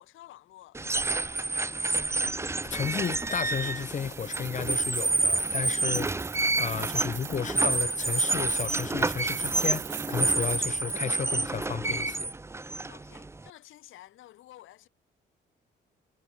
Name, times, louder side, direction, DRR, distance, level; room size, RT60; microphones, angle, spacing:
voice 1, 0.0-1.6 12.9-14.9, left 14 dB, 85° left, 2.0 m, -52 dB
sound 1, 0.7-13.5, right 2 dB, 15° right, 0.7 m, -29 dB
voice 2, 2.7-6.1 6.6-12.3, left 7 dB, 40° left, 0.8 m, -33 dB
sound 2, 2.7-11.0, right 12 dB, 70° right, 1.6 m, -43 dB
cardioid pair, 90°, 20 cm